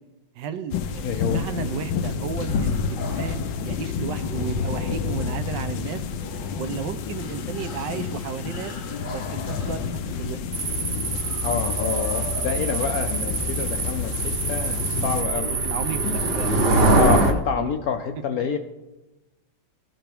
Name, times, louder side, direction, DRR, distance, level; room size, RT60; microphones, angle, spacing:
voice 1, 0.4-6.0 6.6-8.7 9.1-10.5 15.2-16.7 17.3-17.7 18.3-18.6, right 7 dB, 75° right, 10 dB, 1.3 m, -34 dB
sound 1, 0.7-15.2, left 5 dB, 90° left, 1.3 m, -30 dB
voice 2, 1.0-1.4 10.9-15.6 16.0-16.3 16.9-18.6, left 7 dB, 75° left, 7 dB, 0.8 m, -28 dB
sound 2, 2.3-13.4, left 2 dB, 35° left, 0.9 m, -41 dB
sound 3, 10.5-17.3, right 2 dB, 45° right, 0.8 m, -24 dB
15.5 x 5.8 x 3.4 m, 1.0 s
omnidirectional pair, 2.0 m